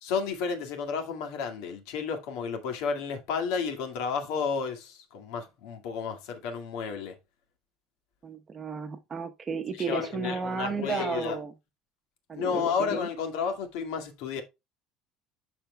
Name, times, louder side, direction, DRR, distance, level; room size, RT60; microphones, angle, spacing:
voice 1, 0.0-7.1 9.7-11.4 12.3-14.4, left 6 dB, 80° left, 1.9 m, -32 dB
voice 2, 8.2-11.5 12.3-13.0, right 5 dB, 25° right, 0.9 m, -33 dB
12.5 x 4.4 x 2.2 m
cardioid pair, 155°, 0 cm